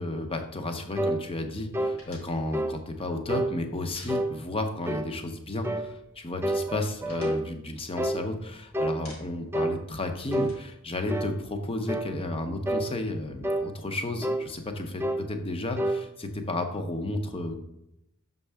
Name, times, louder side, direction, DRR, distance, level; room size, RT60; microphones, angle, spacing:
voice 1, 0.0-17.6, left 2 dB, 25° left, 5 dB, 0.7 m, -33 dB
sound 1, 1.0-1.2 1.7-2.0 2.5-2.8 3.3-3.5 4.1-4.3 4.9-5.1 5.6-5.9 6.4-7.4 8.0-8.2 8.7-9.0 9.5-9.8 10.3-10.6 11.1-11.3 11.9-12.1 12.7-12.9 13.4-13.7 14.2-14.5 15.0-15.2 15.8-16.0, right 1 dB, 10° right, 0.4 m, -28 dB
sound 2, 2.0-4.8 5.0-5.2 5.5-6.2 6.5-8.5 8.8-9.6 9.9-11.7, left 2 dB, 70° left, 2.5 m, -53 dB
6.4 x 5.4 x 3.4 m, 0.82 s
head